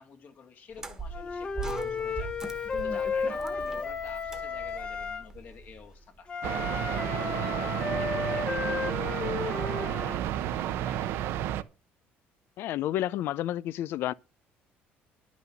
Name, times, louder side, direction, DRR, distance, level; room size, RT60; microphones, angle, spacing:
voice 1, 0.0-2.3 2.6-6.3 6.9-11.2, left 5 dB, 45° left, 2.0 m, -49 dB
sound 1, 0.7-6.0, right 4 dB, 10° right, 1.4 m, -40 dB
Wind instrument woodwind instrument, 1.1-5.3 6.3-10.2, left 5 dB, 25° left, 1.1 m, -33 dB
sound 2, 6.4-11.6, right 12 dB, 70° right, 0.8 m, -31 dB
voice 2, 12.6-14.1, left 13 dB, 60° left, 0.5 m, -30 dB
11.0 x 6.2 x 7.0 m
cardioid pair, 155°, 4 cm